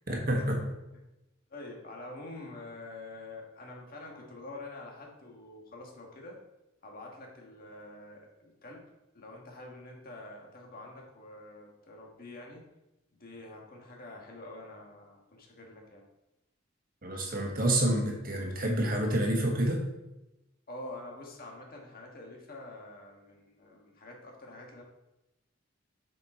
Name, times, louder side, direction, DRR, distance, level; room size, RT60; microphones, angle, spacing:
voice 1, 0.1-0.7 17.0-19.8, right 1 dB, 45° right, 0 dB, 1.5 m, -28 dB
voice 2, 1.5-6.4 6.8-8.9 9.1-12.6 13.1-16.0 20.7-24.8, left 2 dB, 50° left, 0 dB, 1.6 m, -46 dB
6.8 x 5.3 x 4.4 m, 0.93 s
head